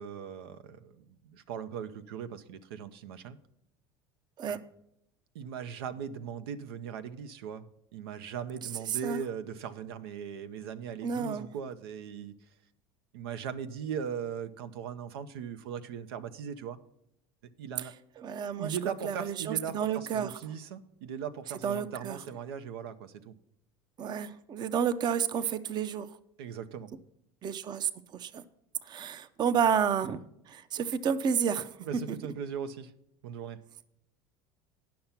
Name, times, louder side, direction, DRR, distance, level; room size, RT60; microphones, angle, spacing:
voice 1, 0.0-3.4 4.5-4.6 5.3-7.7 7.9-12.3 13.1-16.8 17.6-17.9 18.6-23.3 26.4-26.9 31.9-32.9 33.2-33.6, right 7 dB, 90° right, 11 dB, 0.7 m, -39 dB
voice 2, 8.6-9.2 11.0-11.5 17.8-18.8 19.0-20.4 21.6-22.2 24.0-26.2 27.4-28.4 28.8-32.2, right 7 dB, 35° right, 14 dB, 0.6 m, -31 dB
10.5 x 5.8 x 5.8 m, 0.78 s
supercardioid pair, 110°, 12 cm